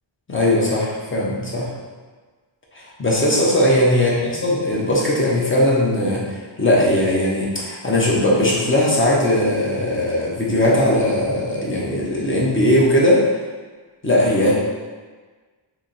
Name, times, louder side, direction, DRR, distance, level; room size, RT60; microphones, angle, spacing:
voice 1, 0.3-1.7 2.7-6.2 6.6-13.2 14.0-14.5, left 1 dB, 25° left, -5 dB, 0.7 m, -19 dB
3.0 x 2.8 x 3.9 m, 1.4 s
wide cardioid pair, 120°, 50 cm